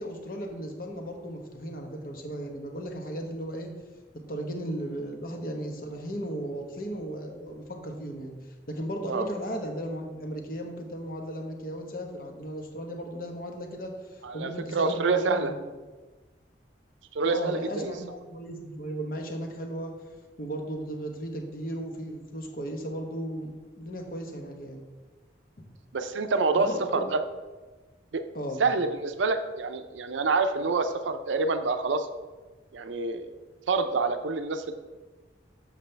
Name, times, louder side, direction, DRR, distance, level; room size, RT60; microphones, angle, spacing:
voice 1, 0.0-3.7 4.1-8.3 8.7-15.6 17.3-19.9 20.4-24.8 25.6-25.7 26.6-27.1 28.3-28.6, equal, 50° left, 3 dB, 1.0 m, -36 dB
voice 2, 14.2-15.5 17.1-17.9 25.9-27.2 28.1-28.2 28.6-32.1 32.7-33.3 33.7-34.7, right 4 dB, 85° right, 9 dB, 0.5 m, -27 dB
7.5 x 6.6 x 3.3 m, 1.3 s
head